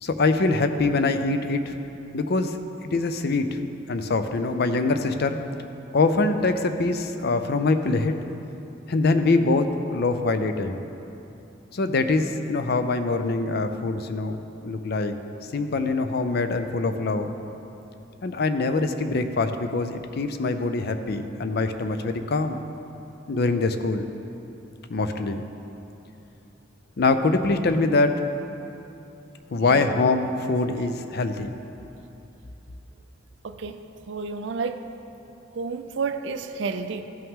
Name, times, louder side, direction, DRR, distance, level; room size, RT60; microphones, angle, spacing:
voice 1, 0.0-1.7 2.1-3.5 3.9-5.4 5.9-8.2 8.9-10.8 11.7-15.1 15.5-17.3 18.2-22.6 23.3-24.1 24.9-25.4 27.0-28.2 29.5-31.5, left 3 dB, 55° left, 8 dB, 0.5 m, -24 dB
voice 2, 33.4-34.8 35.5-37.0, right 4 dB, 65° right, 9 dB, 0.5 m, -31 dB
14.0 x 5.7 x 3.7 m, 2.8 s
head